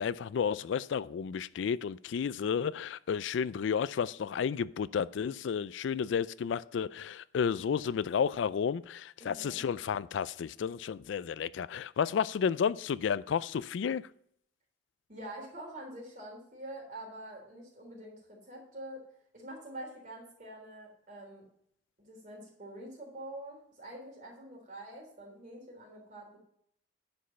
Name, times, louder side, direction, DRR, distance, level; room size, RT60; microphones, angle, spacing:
voice 1, 0.0-14.0, left 7 dB, 80° left, 0.3 m, -32 dB
voice 2, 9.2-9.6 15.1-19.0 19.3-21.4 22.0-26.4, right 1 dB, 40° right, 3.5 m, -46 dB
9.9 x 5.3 x 5.7 m
head